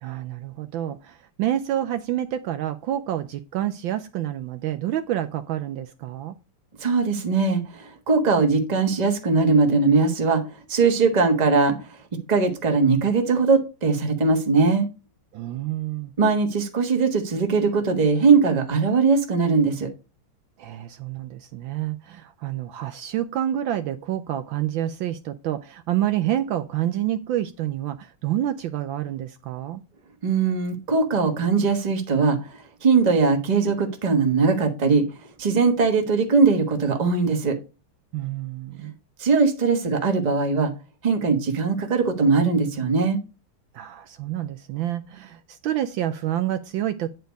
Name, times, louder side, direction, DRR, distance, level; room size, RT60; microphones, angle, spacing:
voice 1, 0.0-6.4 15.3-16.1 20.6-29.8 38.1-38.9 43.7-47.1, right 12 dB, 75° right, 1.3 m, -28 dB
voice 2, 6.8-12.0 12.3-14.9 16.2-19.9 30.2-35.0 35.4-37.6 38.8-38.9 39.2-40.7 41.0-43.2, right 4 dB, 25° right, 1.1 m, -20 dB
9.3 x 4.4 x 5.2 m
omnidirectional pair, 2.3 m